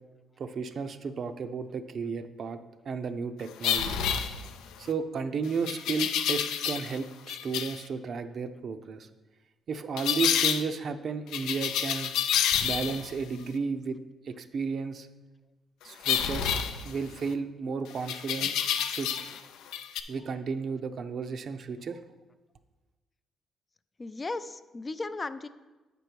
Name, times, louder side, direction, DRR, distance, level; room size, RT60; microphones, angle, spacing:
voice 1, 0.4-2.6 2.8-4.1 4.8-9.1 9.7-12.1 12.6-14.0 14.2-15.1 15.8-16.5 16.8-19.3 20.1-22.0, right 5 dB, 55° right, 9 dB, 0.6 m, -33 dB
sound 1, 3.6-4.8 5.7-7.0 7.3-7.8 10.0-10.6 11.3-13.2 16.0-17.3 18.1-19.4 19.7-20.0, left 9 dB, 90° left, 0.5 m, -29 dB
voice 2, 24.0-25.5, left 3 dB, 30° left, 12 dB, 0.4 m, -36 dB
8.1 x 5.2 x 4.6 m, 1.2 s
cardioid pair, 90°, 0 cm